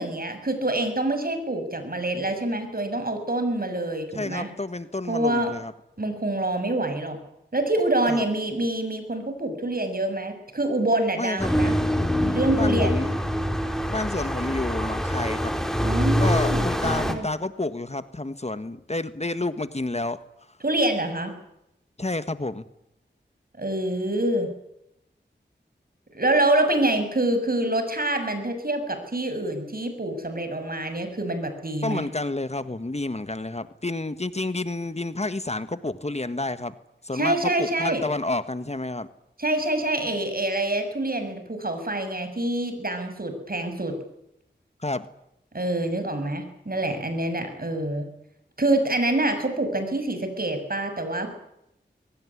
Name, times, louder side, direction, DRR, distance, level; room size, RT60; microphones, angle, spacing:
voice 1, 0.0-4.5 5.1-5.6 6.0-7.2 7.5-11.7 12.2-12.9 15.8-17.3 20.6-21.4 23.6-24.5 26.1-32.0 37.1-38.0 39.4-44.0 45.5-48.1 48.6-51.3, right 1 dB, 50° right, 8 dB, 6.9 m, -26 dB
voice 2, 4.1-5.7 8.1-8.2 11.2-11.5 12.5-13.2 13.9-15.5 16.2-20.2 22.0-22.6 31.8-36.7 37.0-39.1 44.8-45.1, left 2 dB, 35° left, 12 dB, 1.5 m, -29 dB
sound 1, 11.4-17.1, equal, ahead, 4.2 m, -25 dB
23.0 x 19.0 x 9.8 m, 0.81 s
wide cardioid pair, 45°, 19 cm